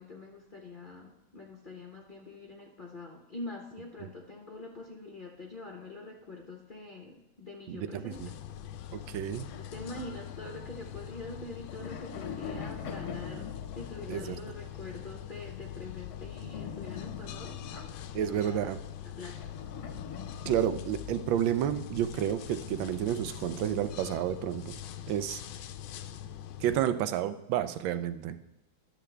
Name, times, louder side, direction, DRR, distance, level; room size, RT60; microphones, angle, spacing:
voice 1, 0.0-8.2 9.6-17.9 18.2-18.7 19.0-19.5, left 2 dB, 45° left, 0 dB, 0.7 m, -44 dB
voice 2, 7.7-8.0 8.9-9.5 14.1-14.4 18.1-18.8 20.4-24.8 25.1-25.4 26.6-28.4, right 10 dB, 85° right, 11 dB, 1.4 m, -30 dB
sound 1, 8.1-26.9, left 10 dB, 90° left, 1.4 m, -43 dB
sound 2, 9.4-11.0 11.5-14.6 16.1-18.7 19.3-21.3, left 6 dB, 65° left, 1.1 m, -44 dB
12.0 x 7.0 x 3.3 m, 0.89 s
omnidirectional pair, 2.1 m